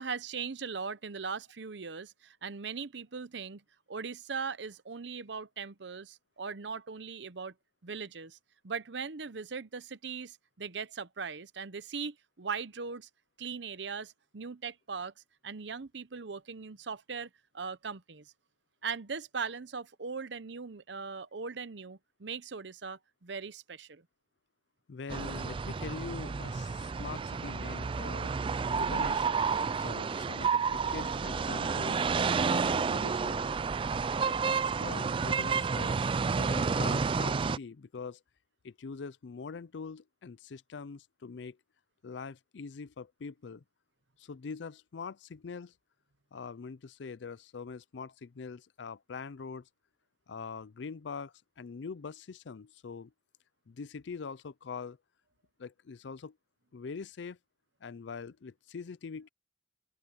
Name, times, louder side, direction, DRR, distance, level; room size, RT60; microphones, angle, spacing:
voice 1, 0.0-3.6 3.9-7.5 7.8-8.4 8.6-13.1 13.4-15.1 15.4-17.3 17.5-18.3 18.8-24.0, right 5 dB, 70° right, 0.8 m, -39 dB
voice 2, 24.9-28.4 28.7-29.4 29.7-33.4 34.2-36.0 36.3-38.2 38.6-41.6 42.0-43.6 44.2-45.7 46.3-49.7 50.3-53.1 53.7-55.0 55.6-56.4 56.7-57.4 57.8-59.3, left 5 dB, 75° left, 0.5 m, -43 dB
sound 1, 25.1-37.6, right 5 dB, 30° right, 0.3 m, -30 dB
open air
head